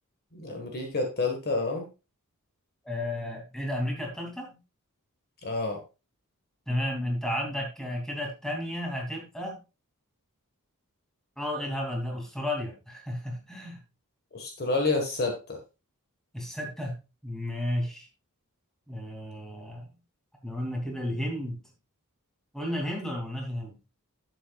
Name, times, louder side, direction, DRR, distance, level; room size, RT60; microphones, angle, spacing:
voice 1, 0.3-1.9 5.4-5.8 14.3-15.6, left 3 dB, 45° left, 3 dB, 1.7 m, -29 dB
voice 2, 2.8-4.6 6.7-9.5 11.4-13.8 16.3-16.9 17.2-18.1 18.9-19.9 20.4-21.6 22.5-23.7, left 1 dB, ahead, 0 dB, 2.8 m, -32 dB
11.0 x 8.0 x 2.5 m, 0.29 s
head